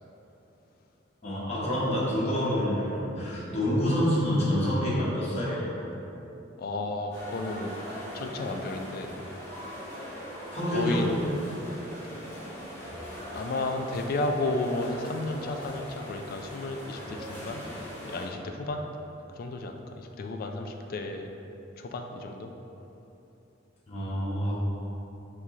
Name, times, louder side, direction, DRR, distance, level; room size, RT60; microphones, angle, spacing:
voice 1, 1.2-5.7 10.5-11.3 23.9-24.5, equal, 35° left, -8 dB, 1.1 m, -27 dB
voice 2, 6.6-7.8 8.1-9.1 10.6-11.1 13.3-17.6 18.1-18.8 19.4-21.3 21.8-22.5, left 2 dB, 50° left, 5 dB, 0.3 m, -33 dB
sound 1, 7.1-18.3, equal, 15° left, 1.4 m, -41 dB
4.6 x 2.8 x 3.7 m, 2.9 s
head